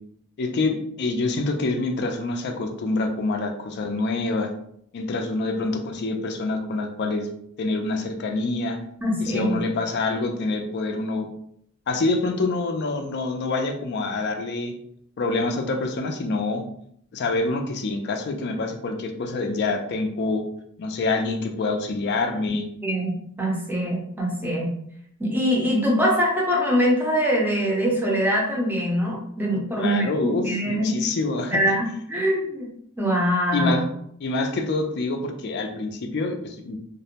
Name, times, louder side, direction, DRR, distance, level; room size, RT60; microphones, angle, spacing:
voice 1, 0.4-4.5 4.9-7.3 7.6-8.8 9.2-11.3 11.9-14.7 15.2-16.6 17.1-20.4 20.8-22.7 29.8-31.6 33.5-33.8 34.2-36.8, left 3 dB, 50° left, 5 dB, 0.4 m, -26 dB
voice 2, 9.0-9.6 22.8-23.1 23.4-24.7 25.2-31.0 31.5-32.7 33.0-33.8, equal, 10° right, -2 dB, 0.5 m, -23 dB
2.5 x 2.1 x 2.8 m, 0.69 s
head